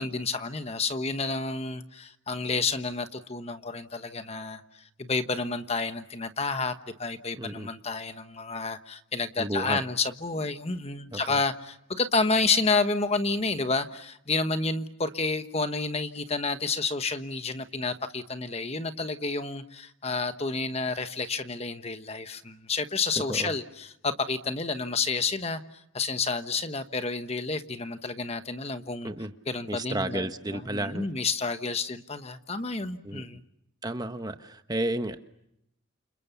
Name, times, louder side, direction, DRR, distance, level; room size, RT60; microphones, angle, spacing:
voice 1, 0.0-6.7 7.0-25.6 25.9-29.1 29.5-33.4, left 4 dB, 30° left, 1.2 m, -30 dB
voice 2, 7.4-7.7 9.4-9.8 11.1-11.4 23.3-23.5 29.0-29.3 29.7-31.1 33.0-33.2 33.8-35.2, right 1 dB, 20° right, 1.2 m, -32 dB
29.5 x 27.0 x 7.0 m
head